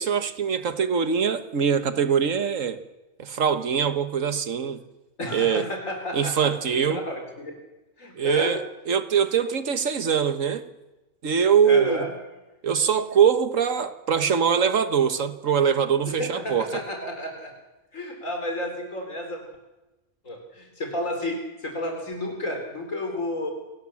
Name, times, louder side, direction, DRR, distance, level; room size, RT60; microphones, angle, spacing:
voice 1, 0.0-2.8 3.2-4.8 5.3-5.7 6.1-7.0 8.1-10.7 11.2-12.1 12.6-16.8, right 7 dB, 85° right, 1.7 m, -23 dB
voice 2, 5.2-7.5 8.0-8.5 11.6-12.1 16.2-17.5 17.9-19.4 20.2-23.5, left 1 dB, 90° left, 4.8 m, -31 dB
28.0 x 18.0 x 7.3 m
omnidirectional pair, 1.3 m